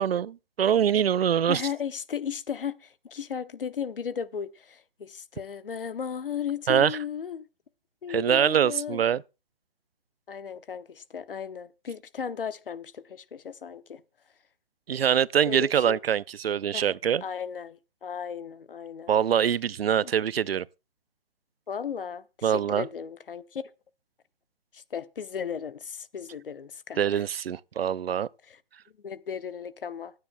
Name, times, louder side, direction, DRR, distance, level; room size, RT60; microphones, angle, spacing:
voice 1, 0.0-1.6 6.7-7.0 8.1-9.2 14.9-17.2 19.1-20.7 22.4-22.9 27.0-28.3, right 9 dB, 85° right, 0.5 m, -24 dB
voice 2, 1.5-7.5 8.0-9.0 10.3-14.0 15.5-16.0 16.7-16.9 17.2-19.1 20.0-20.1 21.7-23.6 24.7-27.2 28.5-28.6 29.0-30.1, left 7 dB, 65° left, 0.9 m, -35 dB
24.5 x 9.6 x 2.2 m
hypercardioid pair, 170°, 29 cm